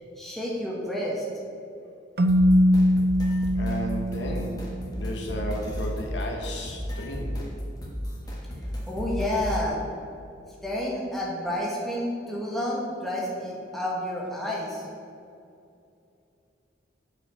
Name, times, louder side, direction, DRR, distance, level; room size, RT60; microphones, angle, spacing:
voice 1, 0.2-1.2 8.9-9.8 10.6-14.8, left 1 dB, ahead, -5 dB, 1.4 m, -30 dB
Keyboard (musical), 2.2-4.9, equal, 55° right, 0.5 m, -22 dB
sound 1, 2.3-9.7, equal, 20° left, 1.4 m, -34 dB
voice 2, 3.5-4.6 4.9-7.6, equal, 75° left, 0 dB, 1.3 m, -34 dB
7.6 x 5.4 x 5.6 m, 2.6 s
head